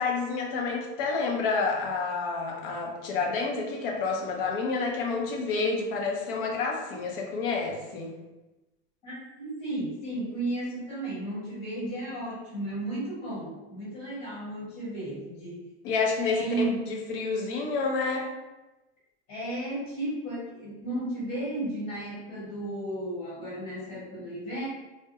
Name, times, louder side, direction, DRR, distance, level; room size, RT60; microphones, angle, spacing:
voice 1, 0.0-8.1 15.8-18.3, left 4 dB, 50° left, 0 dB, 0.6 m, -29 dB
voice 2, 9.0-15.6 16.2-16.8 19.3-24.7, right 1 dB, 35° left, -8 dB, 1.3 m, -34 dB
2.3 x 2.1 x 2.8 m, 1.1 s
supercardioid pair, 165°, 34 cm